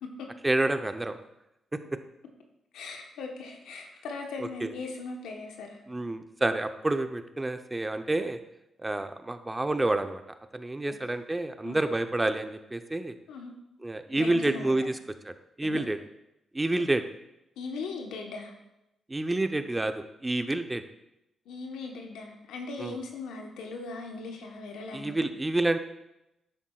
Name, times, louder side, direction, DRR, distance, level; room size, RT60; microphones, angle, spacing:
voice 1, 0.4-1.2 4.4-4.7 5.9-8.4 8.8-10.2 10.5-13.1 13.8-15.0 15.2-16.0 16.5-17.0 19.1-20.8 22.8-23.0 24.9-25.8, right 2 dB, 20° right, 8 dB, 0.7 m, -28 dB
voice 2, 2.7-5.8 10.9-11.0 11.6-11.8 13.3-13.5 14.1-14.9 15.6-15.8 17.6-18.5 21.5-25.3, left 4 dB, 80° left, 2 dB, 1.1 m, -39 dB
10.0 x 7.2 x 2.4 m, 0.89 s
supercardioid pair, 50°, 0 cm